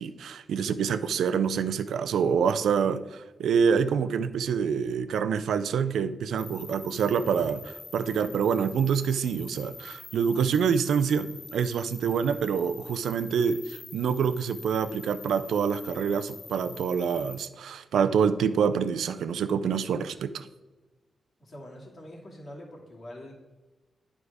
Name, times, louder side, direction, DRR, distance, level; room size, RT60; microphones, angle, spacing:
voice 1, 0.0-20.5, right 6 dB, 85° right, 12 dB, 0.4 m, -26 dB
sound 1, 6.4-17.5, left 4 dB, 45° left, 0.4 m, -46 dB
voice 2, 21.4-23.3, left 1 dB, 60° left, -3 dB, 2.6 m, -44 dB
9.4 x 4.9 x 4.8 m, 1.2 s
cardioid pair, 65°, 0 cm